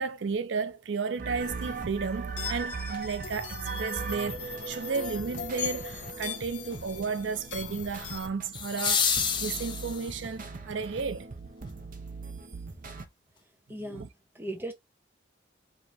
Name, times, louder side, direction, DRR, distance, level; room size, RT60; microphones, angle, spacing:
voice 1, 0.0-11.3 13.9-14.1, right 5 dB, 85° right, 0.5 m, -33 dB
sound 1, 1.2-13.0, right 4 dB, 45° right, 0.8 m, -40 dB
sound 2, 1.4-8.3, left 5 dB, 70° left, 1.0 m, -40 dB
sound 3, 2.9-3.0 8.5-10.3 12.5-12.6, left 7 dB, 25° left, 0.8 m, -29 dB
voice 2, 13.7-14.1 14.3-14.7, right 1 dB, 10° right, 0.9 m, -37 dB
4.8 x 2.8 x 2.6 m
head